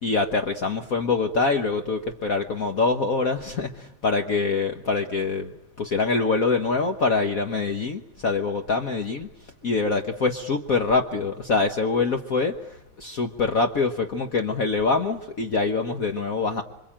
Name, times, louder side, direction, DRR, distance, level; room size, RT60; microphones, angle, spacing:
voice 1, 0.0-5.5 5.8-9.3 9.6-16.6, left 4 dB, 50° left, 4 dB, 1.5 m, -24 dB
27.5 x 24.0 x 8.8 m, 0.86 s
omnidirectional pair, 2.1 m